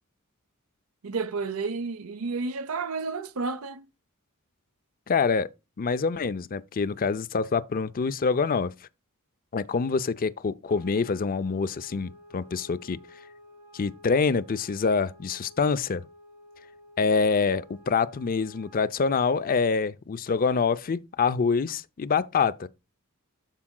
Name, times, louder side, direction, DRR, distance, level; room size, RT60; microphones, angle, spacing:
voice 1, 1.0-3.9, right 4 dB, 75° right, 0.7 m, -31 dB
voice 2, 5.1-5.5 5.8-8.7 9.5-13.0 13.7-16.0 17.0-22.7, left 5 dB, 40° left, 0.5 m, -26 dB
sound 1, 10.6-19.0, left 1 dB, 40° right, 3.7 m, -52 dB
13.0 x 4.8 x 2.2 m
head